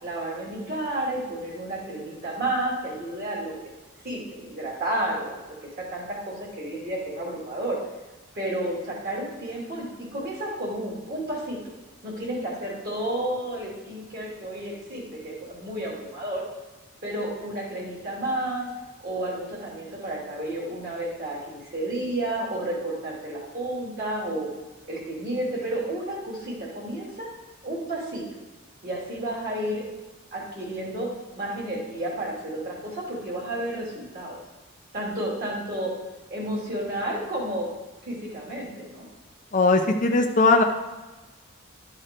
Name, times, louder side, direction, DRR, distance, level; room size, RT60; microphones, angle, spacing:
voice 1, 0.0-3.5 4.0-5.4 5.9-7.8 8.3-9.9 10.1-11.7 12.0-16.4 17.0-18.7 19.0-24.5 24.9-27.3 27.6-28.2 28.8-29.8 30.3-31.1 31.4-34.4 34.9-35.9 36.3-37.7 38.0-39.0, right 1 dB, 45° right, -4 dB, 2.6 m, -31 dB
voice 2, 39.5-40.6, left 3 dB, 35° left, 3 dB, 0.6 m, -19 dB
12.0 x 4.9 x 4.4 m, 1.2 s
head